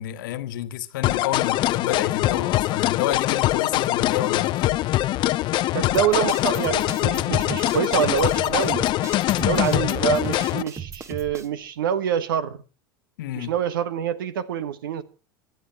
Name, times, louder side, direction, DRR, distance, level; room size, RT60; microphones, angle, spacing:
voice 1, 0.0-4.7 13.2-13.5, left 13 dB, 65° left, 1.5 m, -29 dB
sound 1, 1.0-10.6, left 16 dB, 40° left, 0.9 m, -23 dB
voice 2, 5.7-8.9 9.4-12.6 13.3-15.0, right 8 dB, 65° right, 1.6 m, -26 dB
sound 2, 5.9-11.5, right 7 dB, 25° right, 1.7 m, -36 dB
25.0 x 9.6 x 4.3 m
figure-of-eight pair, 85°, 12 cm